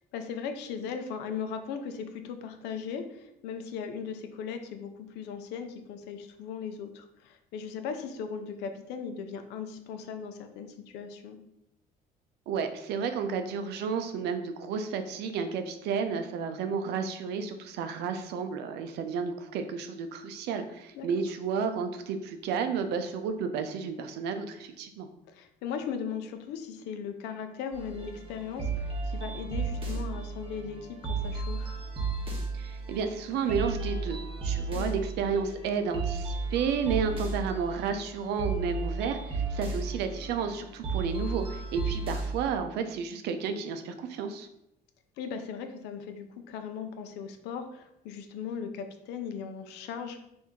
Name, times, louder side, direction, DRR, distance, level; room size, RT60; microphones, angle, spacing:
voice 1, 0.1-11.4 20.9-21.1 25.3-31.8 34.8-34.9 45.2-50.2, left 6 dB, 90° left, 7 dB, 0.5 m, -38 dB
voice 2, 12.5-25.1 32.5-44.5, right 6 dB, 80° right, 7 dB, 0.5 m, -32 dB
sound 1, 27.7-42.5, right 4 dB, 30° right, 1.0 m, -34 dB
4.5 x 2.6 x 3.6 m, 0.83 s
cardioid pair, 110°, 17 cm